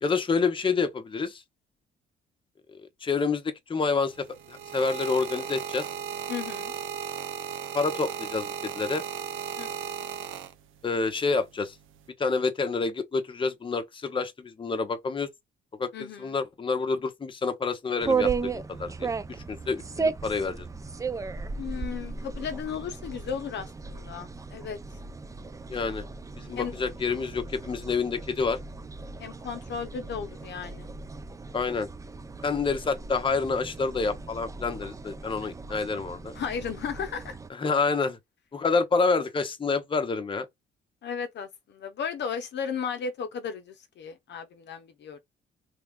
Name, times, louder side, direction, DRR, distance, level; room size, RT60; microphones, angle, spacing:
voice 1, 0.0-1.4 2.7-5.9 7.7-9.1 10.8-11.7 12.2-15.3 15.8-19.1 19.5-20.7 25.7-26.0 26.4-28.6 31.5-31.9 32.4-36.3 37.6-38.2 38.5-40.5, left 4 dB, 25° left, 0.7 m, -28 dB
sound 1, 4.1-10.9 11.8-12.1, right 9 dB, 85° right, 0.6 m, -36 dB
voice 2, 6.3-6.7 9.6-10.0 15.9-16.4 21.6-25.0 26.5-26.7 29.2-30.9 36.3-37.4 41.0-45.2, left 6 dB, 60° left, 0.7 m, -35 dB
sound 2, 18.0-37.5, right 4 dB, 15° right, 0.4 m, -35 dB
3.2 x 2.3 x 3.4 m
cardioid pair, 90°, 20 cm